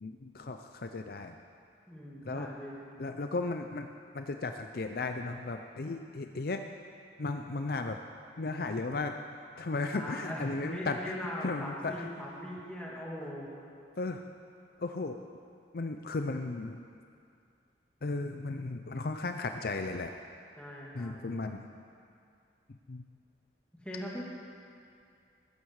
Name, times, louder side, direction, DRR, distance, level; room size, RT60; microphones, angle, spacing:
voice 1, 0.0-1.3 2.2-2.5 3.0-3.9 4.1-6.6 7.2-8.0 8.4-9.1 9.6-11.1 11.4-11.9 14.0-14.2 14.8-15.2 15.7-16.8 18.0-20.1 20.9-21.7 22.9-23.0, left 3 dB, 55° left, 6 dB, 0.5 m, -35 dB
voice 2, 1.9-2.8 9.9-13.6 20.6-21.2 23.8-24.2, left 1 dB, 5° left, -5 dB, 2.6 m, -40 dB
16.0 x 13.5 x 4.8 m, 2.4 s
head